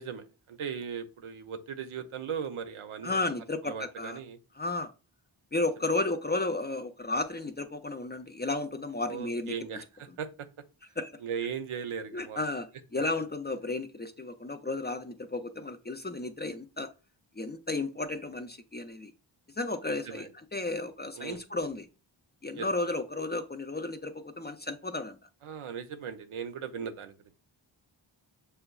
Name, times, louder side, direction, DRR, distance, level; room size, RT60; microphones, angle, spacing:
voice 1, 0.0-3.2 3.6-4.4 9.1-10.5 11.2-12.5 20.1-20.3 21.2-21.4 22.5-22.7 25.4-27.1, right 7 dB, 80° right, 9 dB, 0.6 m, -38 dB
voice 2, 3.0-4.2 4.6-4.9 5.5-9.5 11.0-11.1 12.1-16.9 17.4-19.1 19.6-21.9 22.4-25.2, left 2 dB, 25° left, 8 dB, 0.3 m, -33 dB
6.6 x 2.2 x 2.3 m, 0.31 s
cardioid pair, 40°, 50 cm